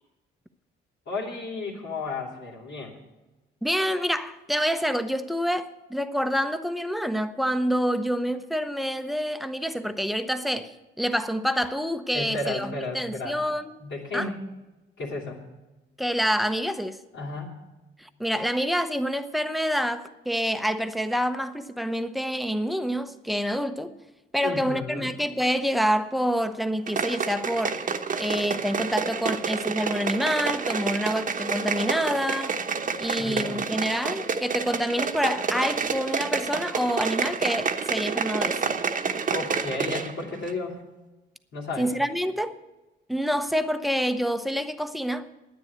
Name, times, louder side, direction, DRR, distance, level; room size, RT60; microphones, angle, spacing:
voice 1, 1.1-3.0 12.1-13.4 13.8-14.4 15.0-15.4 17.1-17.6 24.4-25.1 33.1-33.7 39.3-40.8 41.5-42.0, left 3 dB, 70° left, 2.9 m, -33 dB
voice 2, 3.6-10.7 11.0-13.7 14.1-14.3 16.0-17.0 18.0-23.9 24.3-27.8 28.2-32.5 33.0-38.6 41.8-42.5 43.1-45.3, equal, ahead, 0.8 m, -27 dB
sound 1, 26.9-40.1 40.4-40.5, right 5 dB, 40° right, 1.0 m, -29 dB
10.5 x 9.3 x 8.0 m
cardioid pair, 90°, 20 cm